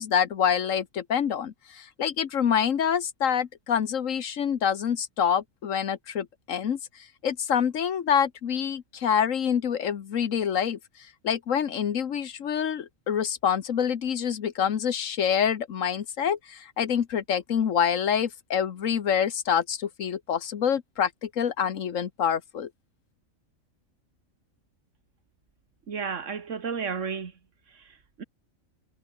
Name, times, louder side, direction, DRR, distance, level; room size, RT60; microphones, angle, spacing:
voice 1, 0.0-6.8 7.2-10.8 11.2-22.7, left 8 dB, 70° left, 1.4 m, -26 dB
voice 2, 25.9-27.3 28.2-28.3, right 6 dB, 65° right, 1.8 m, -32 dB
omnidirectional pair, 1.4 m